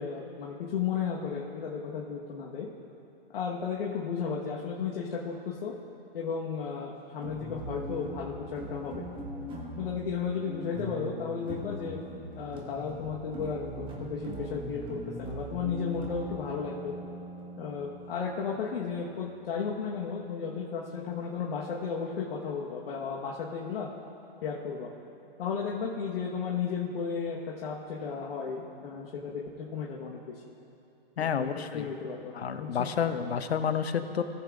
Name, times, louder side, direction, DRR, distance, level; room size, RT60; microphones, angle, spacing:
voice 1, 0.0-2.7 3.3-5.7 6.1-9.1 9.7-12.0 12.3-16.9 17.6-23.9 24.4-24.9 25.4-30.4 31.2-32.9, left 6 dB, 65° left, -3 dB, 1.3 m, -34 dB
sound 1, 7.2-20.0, equal, 15° right, 1.4 m, -41 dB
voice 2, 31.2-31.9 32.3-34.2, left 7 dB, 90° left, 10 dB, 0.8 m, -30 dB
18.5 x 8.1 x 2.5 m, 2.9 s
hypercardioid pair, 135°, 30 cm